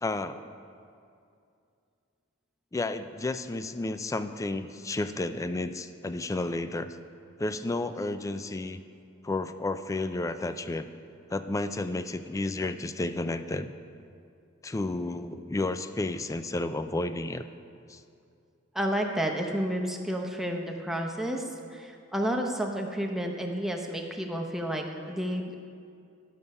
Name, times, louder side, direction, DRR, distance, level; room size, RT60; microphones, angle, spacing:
voice 1, 0.0-0.4 2.7-6.9 7.4-8.8 9.2-10.8 11.3-13.7 14.6-17.4 17.9-18.0, left 2 dB, 15° left, 11 dB, 0.3 m, -31 dB
voice 2, 18.7-25.6, equal, ahead, 1 dB, 0.8 m, -31 dB
11.5 x 6.9 x 5.4 m, 2.5 s
head